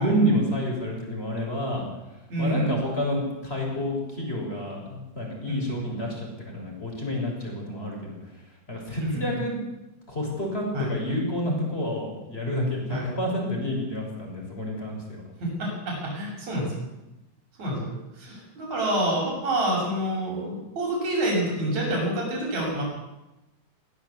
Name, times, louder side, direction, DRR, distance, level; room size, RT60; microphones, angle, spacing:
voice 1, 0.0-1.8 2.4-3.2 3.4-8.1 8.7-9.5 10.1-15.2, equal, 15° left, 0 dB, 6.7 m, -29 dB
voice 2, 2.3-2.7 5.5-5.8 9.0-9.3 10.7-10.9 12.9-13.1 15.4-16.7 17.6-17.9 18.2-22.8, right 1 dB, 60° right, -2 dB, 8.1 m, -27 dB
21.0 x 17.0 x 8.4 m, 0.99 s
omnidirectional pair, 3.6 m